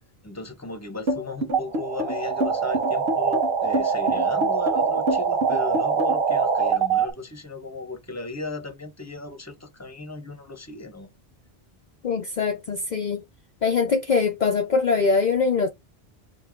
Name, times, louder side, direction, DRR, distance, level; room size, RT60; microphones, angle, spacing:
voice 1, 0.2-11.1, left 2 dB, 15° left, 1.1 m, -36 dB
sound 1, 1.1-6.3, equal, 80° right, 1.4 m, -27 dB
sound 2, 1.5-7.1, right 6 dB, 65° right, 1.1 m, -23 dB
voice 2, 12.0-13.2 13.6-15.7, left 5 dB, 50° left, 0.8 m, -22 dB
4.5 x 3.0 x 3.7 m
omnidirectional pair, 1.0 m